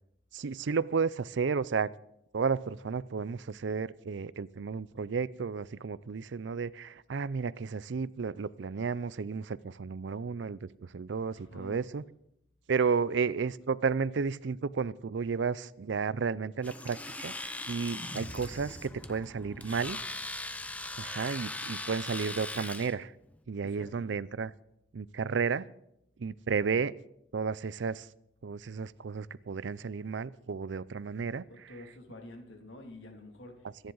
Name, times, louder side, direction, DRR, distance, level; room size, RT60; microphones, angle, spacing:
voice 1, 0.3-1.9 2.3-12.0 12.7-17.3 17.7-20.0 21.0-23.1 23.5-24.5 24.9-25.7 26.2-26.9 27.3-28.1 28.4-31.4 33.8-33.9, right 5 dB, 80° right, 20 dB, 0.5 m, -32 dB
voice 2, 11.3-11.8 17.4-17.5 18.3-18.5 21.8-22.0 23.6-24.1 31.5-33.9, left 1 dB, 85° left, 3 dB, 2.5 m, -49 dB
Domestic sounds home sounds, 16.6-22.9, left 2 dB, 10° left, 0.6 m, -40 dB
sound 1, 17.9-22.3, equal, 15° right, 5.4 m, -49 dB
24.5 x 10.5 x 4.0 m, 0.79 s
head